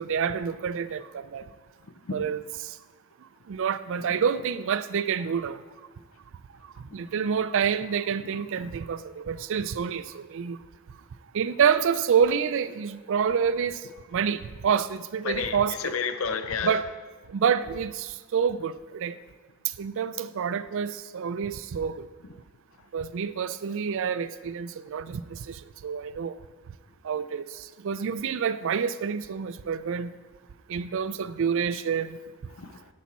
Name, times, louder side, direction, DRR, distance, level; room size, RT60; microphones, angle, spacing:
voice 1, 0.0-1.4 2.1-2.7 3.5-5.6 6.9-10.6 11.3-13.8 14.1-15.9 16.6-16.9 17.3-19.2 19.8-22.1 22.9-26.3 27.0-30.1 30.7-32.2, right 7 dB, 60° right, 15 dB, 0.4 m, -28 dB
voice 2, 15.2-16.8 32.6-32.9, left 6 dB, 65° left, 9 dB, 0.5 m, -31 dB
10.5 x 7.1 x 4.2 m, 1.3 s
head